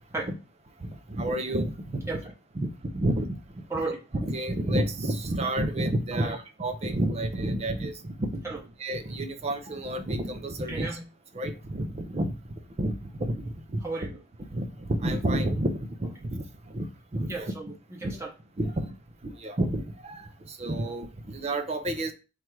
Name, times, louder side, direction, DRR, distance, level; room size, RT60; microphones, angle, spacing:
voice 1, 0.8-2.2 2.6-3.6 4.1-11.0 11.3-12.4 12.8-13.8 14.5-16.9 17.1-17.5 18.0-18.1 18.6-18.9 19.2-22.1, right 1 dB, 30° right, 0.5 m, -30 dB
voice 2, 3.7-4.0 6.1-6.4 8.4-8.6 10.7-11.0 13.8-14.2 17.3-18.3, right 3 dB, 15° right, 0.9 m, -34 dB
4.5 x 2.5 x 4.4 m
head